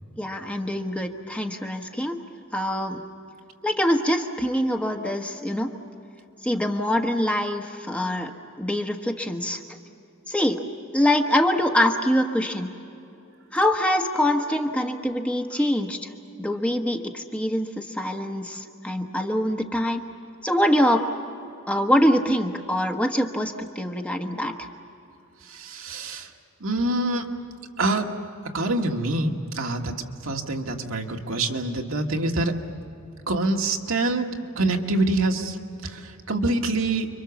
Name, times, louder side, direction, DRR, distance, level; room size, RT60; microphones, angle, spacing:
voice 1, 0.2-2.2 2.5-3.0 3.6-5.7 6.4-8.3 8.6-9.6 10.3-10.6 10.9-12.7 13.5-16.0 16.4-20.0 20.4-21.1 21.7-24.7, left 1 dB, 5° left, 3 dB, 1.2 m, -24 dB
voice 2, 25.5-26.3 26.6-27.3 27.8-28.1 28.5-29.9 30.2-32.5 33.3-37.1, right 2 dB, 75° right, 2 dB, 1.8 m, -25 dB
29.5 x 24.0 x 7.1 m, 2.8 s
head